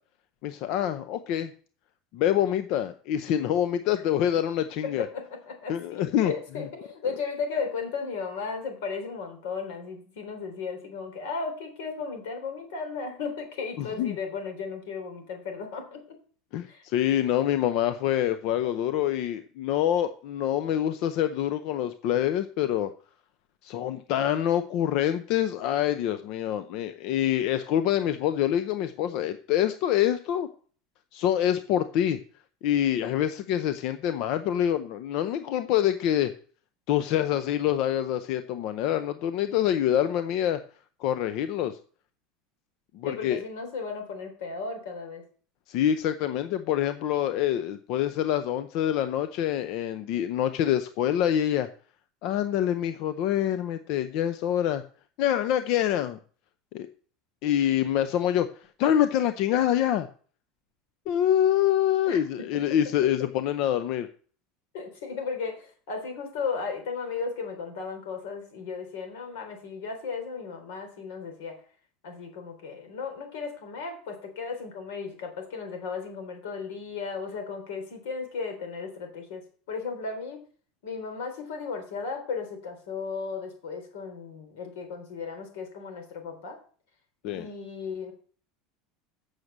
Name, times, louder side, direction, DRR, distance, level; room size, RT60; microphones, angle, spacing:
voice 1, 0.4-1.5 2.1-5.1 5.7-6.3 13.8-14.2 16.5-22.9 23.6-30.5 31.1-32.2 32.6-36.3 36.9-40.6 41.0-41.8 42.9-43.4 45.7-51.7 52.2-54.8 55.2-56.2 56.7-56.9 57.4-58.5 58.8-60.1 61.1-64.1 87.2-87.5, left 11 dB, 50° left, 11 dB, 0.6 m, -26 dB
voice 2, 5.0-16.2 16.7-16.8 43.0-45.2 62.1-62.6 64.7-71.6 72.0-79.4 79.7-80.5 80.8-86.6 87.2-88.1, left 5 dB, 85° left, 5 dB, 3.7 m, -35 dB
8.0 x 6.5 x 7.3 m, 0.44 s
cardioid pair, 170°, 0 cm